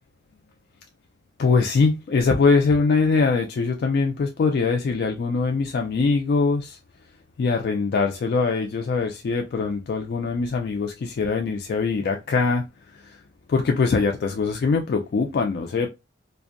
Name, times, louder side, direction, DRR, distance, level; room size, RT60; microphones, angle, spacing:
voice 1, 1.4-6.8 7.4-12.7 12.9-13.2 13.5-15.9, left 4 dB, 55° left, 0.3 m, -22 dB
2.5 x 2.0 x 2.5 m
head